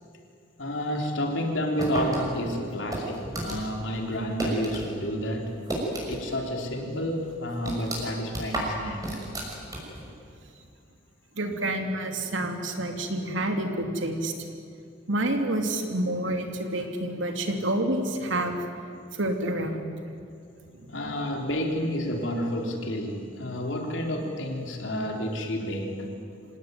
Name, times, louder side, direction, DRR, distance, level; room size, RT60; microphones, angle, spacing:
voice 1, 0.6-5.5 6.1-9.2 20.9-26.1, equal, 75° left, 2 dB, 3.9 m, -30 dB
sound 1, 1.8-4.9 5.2-6.4 6.7-6.8 7.3-10.1, right 1 dB, 20° right, 6.2 m, -33 dB
voice 2, 11.4-14.3 15.1-18.6 19.1-19.8 20.8-20.9, right 1 dB, 80° right, 4 dB, 2.9 m, -28 dB
26.5 x 18.0 x 9.4 m, 2.3 s
head